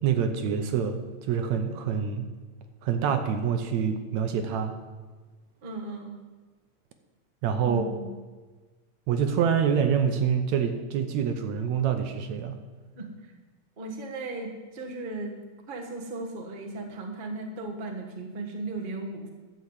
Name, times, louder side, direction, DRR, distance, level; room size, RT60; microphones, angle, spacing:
voice 1, 0.0-2.3 2.8-4.7 7.4-7.9 9.1-12.6, right 7 dB, 70° right, 7 dB, 2.0 m, -26 dB
voice 2, 5.6-6.1 7.6-8.1 12.9-13.3 13.8-15.3 15.7-19.3, right 2 dB, 30° right, 1 dB, 1.0 m, -36 dB
11.5 x 7.2 x 8.1 m, 1.3 s
omnidirectional pair, 3.5 m